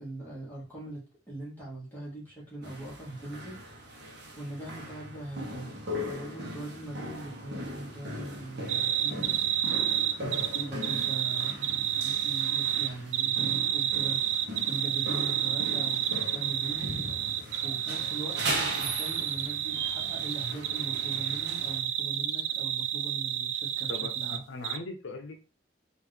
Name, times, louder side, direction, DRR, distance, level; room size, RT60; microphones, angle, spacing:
voice 1, 0.0-4.0 4.4-9.9 10.2-17.0 17.2-17.3 17.6-18.4 18.8-24.4, right 2 dB, 10° left, -7 dB, 1.5 m, -41 dB
sound 1, 2.6-21.8, right 1 dB, 60° right, 0.9 m, -39 dB
sound 2, 8.7-24.4 24.6-24.8, right 10 dB, 85° right, 0.4 m, -30 dB
voice 2, 23.9-25.4, left 2 dB, 85° left, 4 dB, 0.6 m, -40 dB
3.6 x 2.5 x 3.3 m, 0.32 s
head